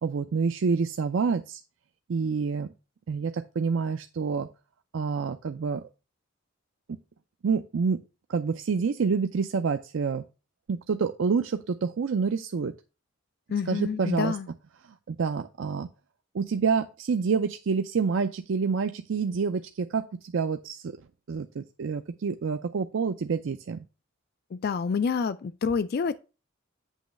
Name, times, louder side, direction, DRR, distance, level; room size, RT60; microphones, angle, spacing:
voice 1, 0.0-1.6 2.1-2.7 3.1-4.5 4.9-5.8 7.4-8.0 8.3-10.2 10.7-12.7 13.7-14.4 14.8-15.9 16.3-20.9 21.3-23.8, right 5 dB, 75° right, 0.4 m, -28 dB
voice 2, 13.5-14.5 24.5-26.2, left 5 dB, 50° left, 0.3 m, -28 dB
8.2 x 3.1 x 6.4 m
head